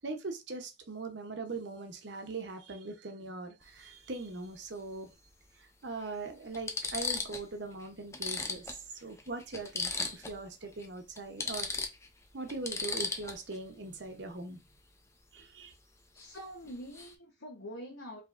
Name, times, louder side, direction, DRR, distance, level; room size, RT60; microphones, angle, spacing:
voice 1, 0.0-5.1 5.6-11.7 12.3-14.6 15.3-15.7, right 3 dB, 60° right, 0.8 m, -41 dB
sound 1, 3.6-3.8 5.3-5.4 6.0-6.1 6.5-7.5 7.8-7.9 8.1-10.4 10.7-10.9 11.2-13.6 16.2-16.4 16.7-17.1, left 3 dB, 15° left, 0.5 m, -36 dB
voice 2, 16.1-18.2, equal, 80° left, 1.0 m, -45 dB
4.9 x 3.0 x 2.4 m
head